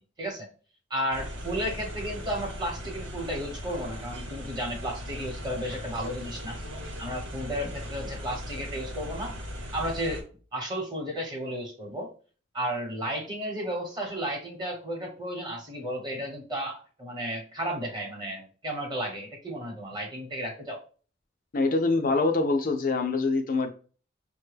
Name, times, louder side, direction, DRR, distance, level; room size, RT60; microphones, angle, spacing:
voice 1, 0.9-6.6 7.0-9.4 9.7-10.2 10.5-12.1 12.5-20.8, equal, 20° right, 0 dB, 1.0 m, -33 dB
sound 1, 1.1-10.2, equal, 90° right, 1.0 m, -38 dB
voice 2, 21.5-23.7, left 3 dB, 45° left, 4 dB, 0.4 m, -24 dB
5.6 x 2.2 x 3.2 m, 0.39 s
head